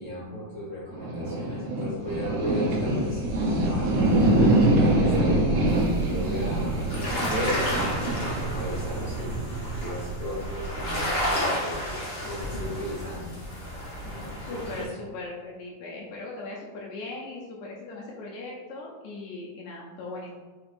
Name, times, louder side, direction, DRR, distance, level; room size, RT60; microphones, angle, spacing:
voice 1, 0.0-6.8 7.3-11.8 12.2-13.3 14.0-14.9, equal, 55° right, -10 dB, 0.8 m, -36 dB
sound 1, 0.9-11.3, right 1 dB, 75° right, 1.5 m, -25 dB
sound 2, 5.7-14.8, equal, 60° left, 1.3 m, -32 dB
voice 2, 14.4-20.3, left 2 dB, 80° left, -3 dB, 1.8 m, -39 dB
5.9 x 2.9 x 2.5 m, 1.4 s
omnidirectional pair, 3.7 m